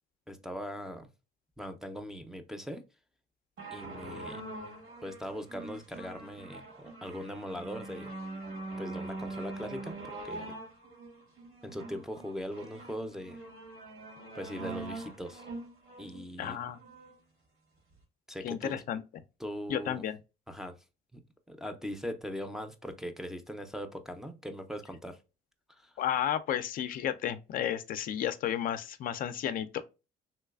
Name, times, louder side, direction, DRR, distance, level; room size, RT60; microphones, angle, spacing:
voice 1, 0.3-1.1 1.6-2.8 3.7-4.4 5.0-8.1 8.8-10.6 11.6-13.4 14.3-15.5 16.0-16.6 18.3-18.8 19.4-20.0 20.5-20.8 21.1-21.2 21.5-25.2 25.8-26.0, equal, 5° right, 0.4 m, -40 dB
sound 1, 3.6-17.1 17.9-18.0, right 2 dB, 85° right, 1.6 m, -43 dB
voice 2, 16.4-16.8 18.4-19.0 19.7-20.2 26.0-29.8, left 10 dB, 55° left, 0.4 m, -32 dB
3.1 x 3.0 x 2.3 m
cardioid pair, 110°, 17 cm